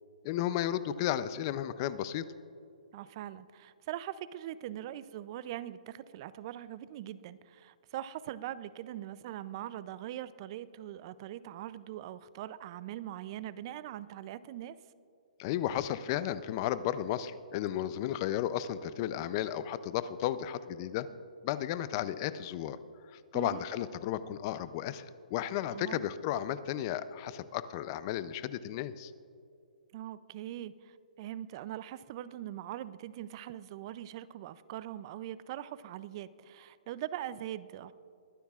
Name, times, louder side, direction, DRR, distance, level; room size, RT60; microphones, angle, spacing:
voice 1, 0.2-2.2 15.4-21.1 21.4-22.8 23.1-29.1, left 11 dB, 30° left, 15 dB, 0.5 m, -34 dB
voice 2, 2.9-14.8 23.3-23.6 25.7-26.0 29.9-37.9, right 12 dB, 35° right, 17 dB, 0.4 m, -42 dB
22.0 x 11.5 x 2.4 m, 2.5 s
hypercardioid pair, 155°, 4 cm